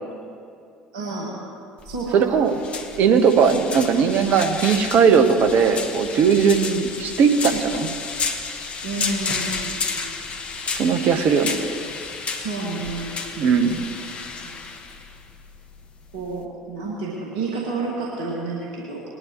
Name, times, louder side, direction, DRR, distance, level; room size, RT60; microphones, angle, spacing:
voice 1, 0.9-1.3 1.8-2.3 3.3-3.5 8.8-10.1 12.3-13.1 14.3-14.7 16.1-19.0, right 3 dB, 70° right, -4 dB, 1.9 m, -30 dB
sound 1, 1.8-16.4, left 4 dB, 35° left, 1.2 m, -31 dB
voice 2, 2.1-2.5 3.0-7.9 10.7-11.6 13.4-13.8, right 6 dB, 55° right, 6 dB, 1.1 m, -18 dB
20.5 x 11.0 x 3.0 m, 2.4 s
figure-of-eight pair, 60°, 3 cm